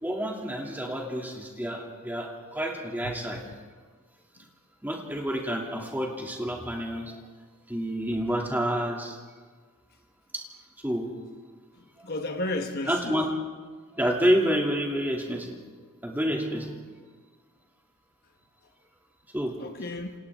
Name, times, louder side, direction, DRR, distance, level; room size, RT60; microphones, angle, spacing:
voice 1, 0.0-3.4 4.8-7.2 7.7-9.2 10.3-10.4 10.8-11.1 12.9-13.3 13.9-15.6 16.0-16.8 19.3-19.5, equal, 10° right, 2.6 m, -28 dB
voice 2, 11.8-13.2 19.6-20.1, left 2 dB, 45° left, 1.2 m, -33 dB
28.0 x 27.0 x 3.6 m
head